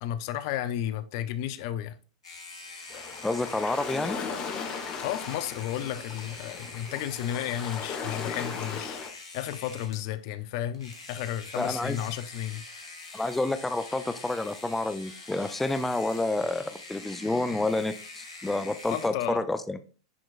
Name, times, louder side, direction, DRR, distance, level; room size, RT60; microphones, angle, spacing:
voice 1, 0.0-2.0 5.0-12.6 18.9-19.4, left 11 dB, 50° left, 0.6 m, -33 dB
sound 1, 2.2-10.1 10.7-19.1, left 3 dB, 75° left, 2.1 m, -45 dB
sound 2, 2.9-9.1, left 6 dB, 35° left, 1.3 m, -37 dB
voice 2, 3.2-4.2 11.6-12.0 13.1-19.8, left 2 dB, 5° left, 0.5 m, -29 dB
10.0 x 4.5 x 2.5 m
figure-of-eight pair, 95°, 3 cm